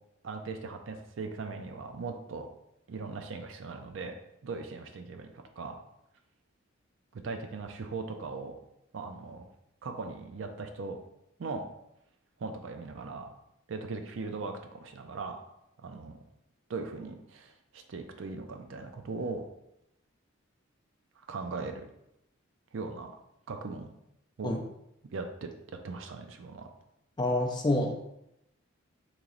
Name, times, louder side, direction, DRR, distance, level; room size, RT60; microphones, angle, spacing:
voice 1, 0.2-2.5 2.9-4.1 4.4-5.8 7.1-8.6 8.9-9.5 9.8-11.0 11.4-11.7 12.4-13.3 13.7-15.4 15.8-16.2 16.7-19.5 21.3-21.8 22.7-23.1 23.5-23.9 24.4-24.6 25.1-26.7, right 4 dB, 70° right, 5 dB, 0.4 m, -39 dB
voice 2, 27.2-27.9, left 2 dB, 20° left, 1 dB, 0.4 m, -27 dB
3.0 x 2.9 x 3.8 m, 0.83 s
head